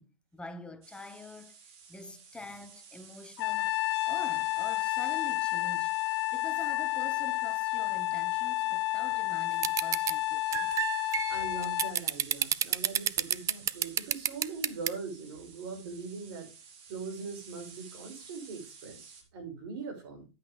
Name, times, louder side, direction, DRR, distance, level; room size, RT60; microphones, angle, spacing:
voice 1, 0.0-1.6 1.9-3.8 4.1-6.0 6.3-10.8, left 2 dB, 5° left, 1.1 m, -46 dB
sound 1, 0.8-19.2, right 6 dB, 40° right, 2.9 m, -53 dB
Trumpet, 3.4-12.0, left 18 dB, 55° left, 0.5 m, -30 dB
sound 2, 9.6-10.1 10.5-14.9, right 10 dB, 20° right, 0.4 m, -28 dB
voice 2, 11.3-16.5 16.9-20.3, right 4 dB, 55° right, 5.9 m, -41 dB
10.5 x 8.9 x 3.4 m
hypercardioid pair, 120°, 15 cm